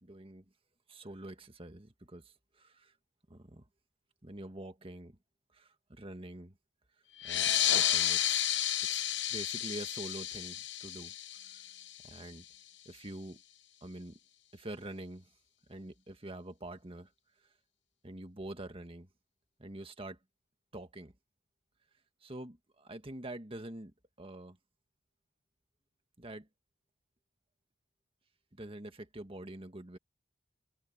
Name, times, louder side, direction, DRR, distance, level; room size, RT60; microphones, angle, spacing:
voice 1, 0.0-0.5 0.9-2.9 3.3-3.7 4.2-5.2 5.5-6.6 7.2-8.5 8.9-9.0 9.3-11.7 12.0-12.5 12.9-13.4 13.8-14.2 14.5-15.3 15.7-17.1 18.0-19.1 19.6-20.2 20.7-21.1 22.2-24.6 26.2-26.5 28.5-30.0, right 1 dB, 30° right, 1.7 m, -46 dB
sound 1, 7.2-12.3, left 11 dB, 65° left, 1.0 m, -32 dB
head